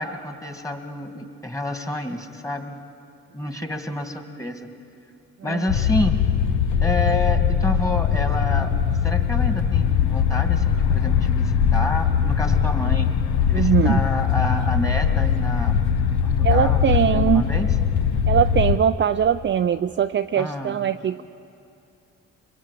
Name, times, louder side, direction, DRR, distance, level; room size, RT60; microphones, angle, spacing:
voice 1, 0.0-2.8 3.3-4.7 5.4-6.2 6.8-8.7 9.0-13.1 13.5-15.8 16.2-17.7 20.4-20.9, left 1 dB, 10° left, 6 dB, 2.2 m, -29 dB
sound 1, 5.7-18.8, left 8 dB, 70° left, 1.2 m, -21 dB
voice 2, 13.5-14.0 16.4-17.4 18.3-21.2, right 9 dB, 40° right, 8 dB, 0.5 m, -21 dB
25.0 x 21.0 x 8.5 m, 2.6 s
cardioid pair, 90°, 30 cm